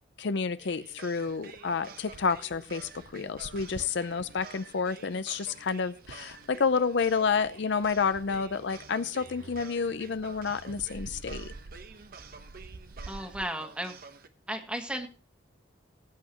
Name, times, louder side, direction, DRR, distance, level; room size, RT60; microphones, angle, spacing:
voice 1, 0.2-11.5, left 5 dB, 60° left, 13 dB, 0.5 m, -30 dB
sound 1, 0.6-14.3, right 5 dB, 50° right, 1.0 m, -50 dB
sound 2, 1.3-13.5, right 3 dB, 90° right, 0.7 m, -49 dB
voice 2, 13.1-14.0 14.5-15.1, right 1 dB, 5° right, 5 dB, 1.6 m, -34 dB
19.5 x 8.5 x 2.9 m, 0.36 s
head